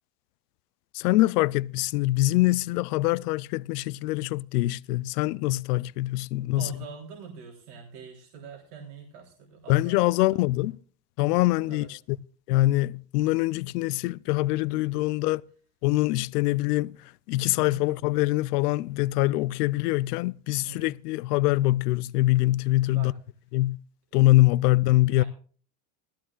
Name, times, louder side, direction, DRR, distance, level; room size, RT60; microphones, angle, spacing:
voice 1, 0.9-6.7 9.7-10.7 11.2-12.2 12.5-15.4 15.8-17.0 17.3-23.1 23.5-23.8 24.1-25.2, left 18 dB, 75° left, 0.6 m, -24 dB
voice 2, 6.5-10.7 11.7-11.9 17.6-17.9 20.6-21.0 22.9-23.1 24.1-24.3 25.1-25.2, right 6 dB, 75° right, 3.8 m, -44 dB
20.0 x 14.0 x 2.4 m
supercardioid pair, 180°, 46 cm